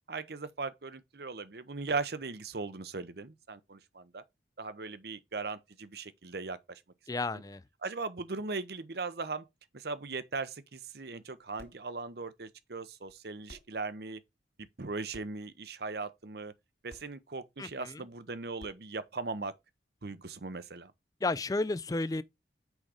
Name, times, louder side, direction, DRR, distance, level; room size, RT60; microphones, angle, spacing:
voice 1, 0.1-4.2 4.6-6.8 7.8-9.4 9.7-14.2 14.8-16.5 16.8-19.5 20.0-20.9, right 3 dB, 60° right, 0.8 m, -38 dB
voice 2, 7.1-7.6 17.6-18.0 21.2-22.2, left 2 dB, 20° left, 0.4 m, -32 dB
sound 1, 11.6-11.9 13.1-13.2 13.5-13.8 15.1-15.4 16.9-17.1 18.6-18.9, equal, 60° left, 2.1 m, -53 dB
6.3 x 5.0 x 4.9 m
head